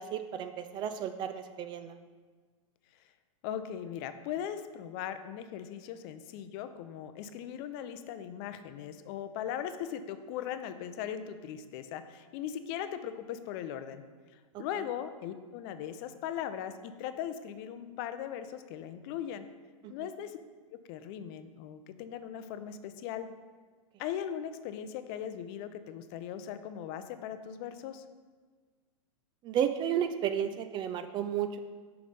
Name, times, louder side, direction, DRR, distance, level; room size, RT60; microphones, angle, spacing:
voice 1, 0.0-2.0 14.5-14.8 19.8-19.9 29.4-31.6, right 9 dB, 25° right, 9 dB, 0.3 m, -33 dB
voice 2, 3.4-14.0 14.6-19.5 19.9-20.4 20.9-23.3 24.0-28.0, left 9 dB, 45° left, 10 dB, 0.5 m, -39 dB
5.8 x 5.0 x 5.3 m, 1.5 s
hypercardioid pair, 125°, 18 cm